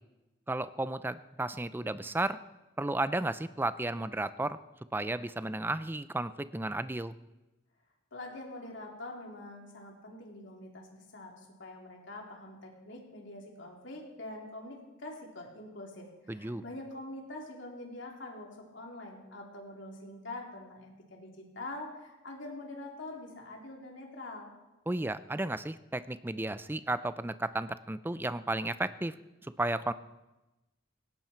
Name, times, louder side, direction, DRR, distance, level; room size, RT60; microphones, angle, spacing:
voice 1, 0.5-2.4 2.8-4.6 4.9-7.1 16.3-16.6 24.9-29.1 29.6-29.9, right 2 dB, 10° right, 14 dB, 0.4 m, -33 dB
voice 2, 8.1-24.5, left 2 dB, 65° left, 0 dB, 3.6 m, -45 dB
18.0 x 18.0 x 4.5 m, 1.0 s
head